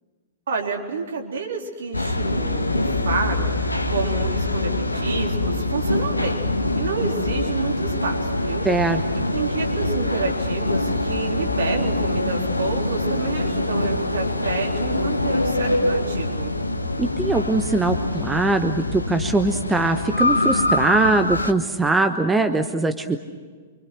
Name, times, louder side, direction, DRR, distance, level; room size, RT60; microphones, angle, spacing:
voice 1, 0.5-6.4 6.7-8.7 9.1-16.5, right 4 dB, 60° right, 1 dB, 3.9 m, -29 dB
sound 1, 1.9-21.5, left 2 dB, 85° left, 1.5 m, -24 dB
voice 2, 8.6-9.0 17.0-23.2, right 3 dB, 10° right, 7 dB, 1.1 m, -21 dB
26.5 x 25.0 x 6.3 m, 1.5 s
figure-of-eight pair, 105°, 0 cm